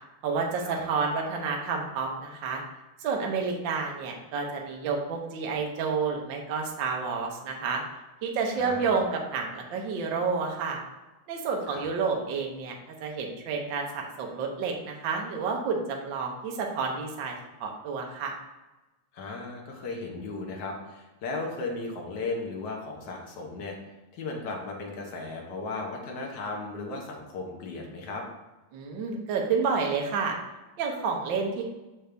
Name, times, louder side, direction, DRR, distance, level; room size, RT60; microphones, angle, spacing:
voice 1, 0.2-2.6 3.0-7.8 8.2-10.8 11.3-18.3 28.7-30.4 30.8-31.6, right 5 dB, 70° right, 1 dB, 1.1 m, -30 dB
voice 2, 8.5-8.9 11.7-11.9 19.1-23.8 24.1-28.2, left 3 dB, 65° left, 0 dB, 1.0 m, -36 dB
6.6 x 5.3 x 3.4 m, 1.1 s
omnidirectional pair, 3.3 m